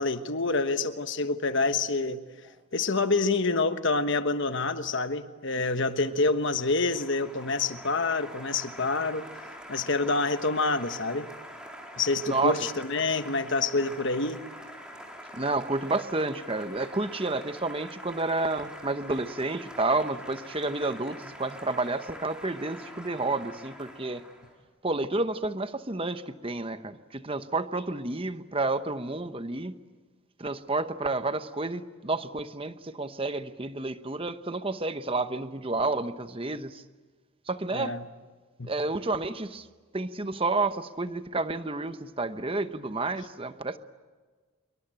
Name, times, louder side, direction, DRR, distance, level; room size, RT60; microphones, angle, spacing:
voice 1, 0.0-2.2 2.7-9.2 9.7-11.3 12.0-14.4 37.7-38.0 38.6-38.7, left 3 dB, 55° left, 1.3 m, -27 dB
Applause, 5.7-24.6, equal, 5° right, 4.0 m, -45 dB
voice 2, 12.3-12.7 15.3-24.2 24.8-29.8 30.4-36.8 37.5-37.9 38.6-39.7 39.9-43.8, right 2 dB, 25° right, 0.9 m, -30 dB
26.0 x 23.5 x 9.0 m
head